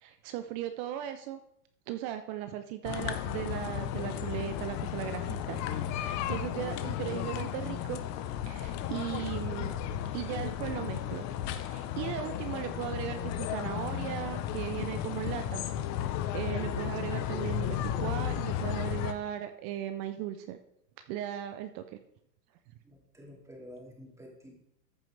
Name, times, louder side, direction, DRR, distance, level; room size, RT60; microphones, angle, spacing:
voice 1, 0.0-1.4 1.9-5.6 5.9-8.0 8.5-9.7 10.1-11.2 11.6-15.6 16.0-20.6 21.1-22.0, right 12 dB, 30° right, 9 dB, 0.4 m, -37 dB
sound 1, 2.8-19.1, left 10 dB, 35° left, 0.7 m, -34 dB
voice 2, 22.9-24.5, equal, 5° right, -1 dB, 2.4 m, -49 dB
14.0 x 6.0 x 3.2 m, 0.75 s
hypercardioid pair, 120°, 49 cm